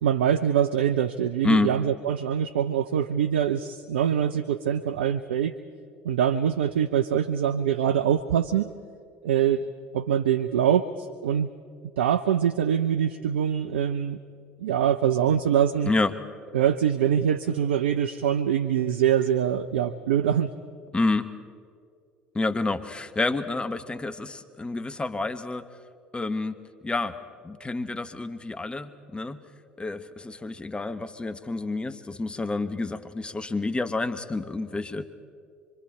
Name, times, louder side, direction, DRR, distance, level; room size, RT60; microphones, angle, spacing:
voice 1, 0.0-5.5 6.0-8.7 9.2-9.6 9.9-11.5 12.0-14.2 14.6-15.9 16.5-20.5, right 9 dB, 75° right, 11 dB, 0.5 m, -24 dB
voice 2, 20.9-21.3 22.3-25.7 26.1-27.1 27.4-29.4 29.8-35.0, left 3 dB, 15° left, 10 dB, 1.0 m, -28 dB
25.5 x 24.0 x 4.3 m, 2.2 s
figure-of-eight pair, 65°, 6 cm